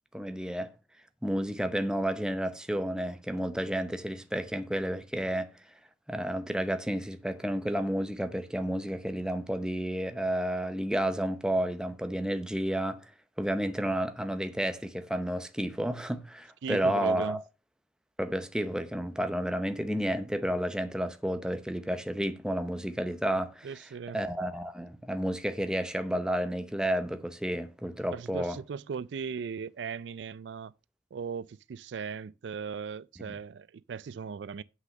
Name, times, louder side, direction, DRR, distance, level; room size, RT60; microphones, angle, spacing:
voice 1, 0.1-0.7 1.2-5.5 6.1-13.1 13.4-17.4 18.2-23.8 24.1-28.6 33.2-33.4, right 1 dB, 5° right, 0.8 m, -31 dB
voice 2, 16.6-17.4 23.6-24.2 28.1-30.7 31.1-34.6, right 6 dB, 75° right, 0.4 m, -38 dB
7.8 x 6.2 x 6.4 m
head